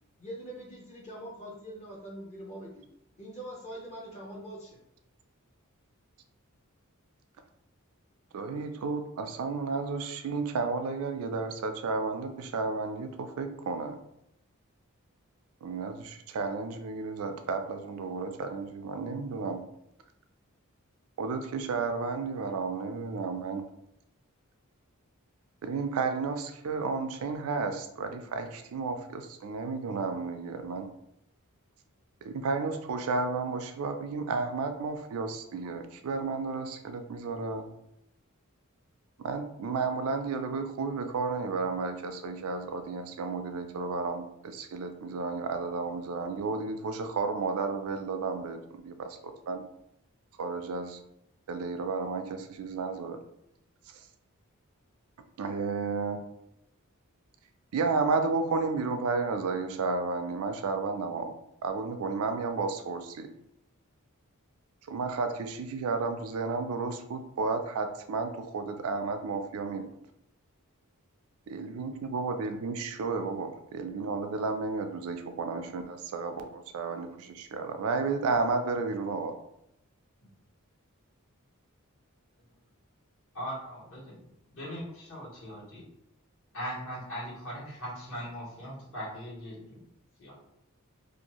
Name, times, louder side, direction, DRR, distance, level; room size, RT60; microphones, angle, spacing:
voice 1, 0.2-2.8 3.2-4.7, right 1 dB, 30° left, -3 dB, 0.5 m, -43 dB
voice 2, 8.3-14.0 15.6-19.6 21.2-23.6 25.6-30.9 32.2-37.7 39.2-49.6 50.4-51.0 51.5-53.2 55.4-56.2 57.7-61.3 61.6-63.3 64.9-69.8 71.5-79.3, right 4 dB, 75° right, 7 dB, 0.4 m, -32 dB
voice 3, 83.3-84.2 84.5-85.8 86.5-89.8 90.2-90.4, equal, 65° left, -6 dB, 1.3 m, -39 dB
2.6 x 2.3 x 2.9 m, 0.79 s
head